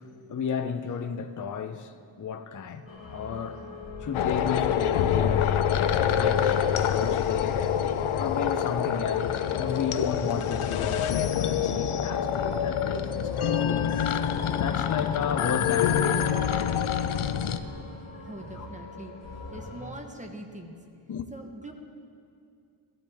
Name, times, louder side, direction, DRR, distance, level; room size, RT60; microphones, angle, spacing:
voice 1, 0.0-3.6 4.0-7.7 8.2-13.9 14.5-16.9 18.6-18.7 21.1-21.3, left 6 dB, 40° left, 0.6 m, -33 dB
sound 1, 2.9-19.9, left 2 dB, 65° left, 3.1 m, -41 dB
sound 2, 4.1-17.6, left 9 dB, 80° left, 0.7 m, -26 dB
voice 2, 18.2-19.1 19.5-20.8 21.3-21.7, right 1 dB, 15° right, 1.1 m, -42 dB
17.0 x 13.0 x 3.5 m
wide cardioid pair, 135°, 49 cm